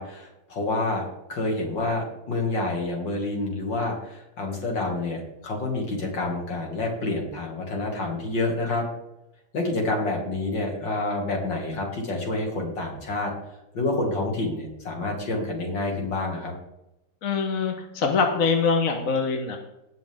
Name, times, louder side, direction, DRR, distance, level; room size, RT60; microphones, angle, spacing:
voice 1, 0.0-8.9 9.5-13.3 13.7-16.5, left 2 dB, 65° left, 0 dB, 3.1 m, -28 dB
voice 2, 17.2-19.6, left 5 dB, 50° left, 4 dB, 1.5 m, -24 dB
19.0 x 6.5 x 3.7 m, 0.91 s
omnidirectional pair, 2.2 m